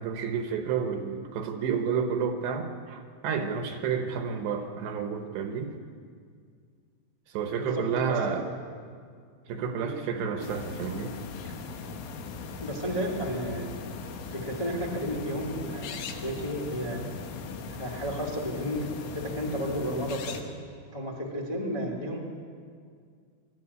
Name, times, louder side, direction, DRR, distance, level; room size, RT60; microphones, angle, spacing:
voice 1, 0.0-5.7 7.3-8.5 9.5-11.2, right 6 dB, 70° right, 5 dB, 3.0 m, -30 dB
voice 2, 7.5-8.5 9.8-9.9 12.6-13.7 14.2-17.0 17.7-20.4 20.9-22.2, equal, 25° left, -2 dB, 0.7 m, -33 dB
sound 1, 10.4-20.4, left 5 dB, 75° left, 3.9 m, -39 dB
22.5 x 14.0 x 9.7 m, 2.1 s
omnidirectional pair, 5.8 m